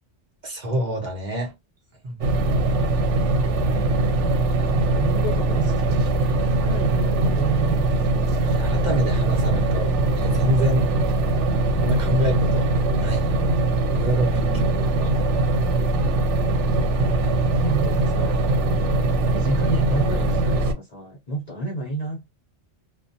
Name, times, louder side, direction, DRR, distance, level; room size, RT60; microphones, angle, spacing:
voice 1, 0.4-1.5 2.0-2.3 8.4-10.9 11.8-12.7 13.0-13.3 13.9-14.5 15.0-15.1, equal, 40° right, 0.9 m, -26 dB
sound 1, 2.2-20.7, right 2 dB, 85° right, 1.0 m, -21 dB
voice 2, 4.4-7.9 14.4-15.0 17.3-22.3, right 2 dB, 45° left, 0.6 m, -31 dB
2.4 x 2.2 x 2.5 m
omnidirectional pair, 1.2 m